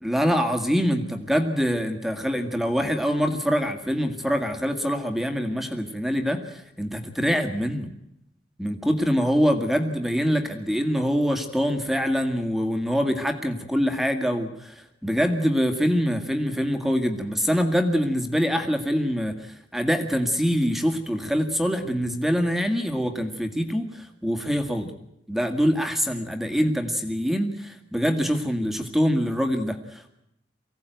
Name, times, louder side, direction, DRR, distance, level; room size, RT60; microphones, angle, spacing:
voice 1, 0.0-7.9 8.6-24.9 25.3-30.1, equal, ahead, 5 dB, 2.0 m, -24 dB
24.5 x 17.0 x 9.3 m, 0.80 s
head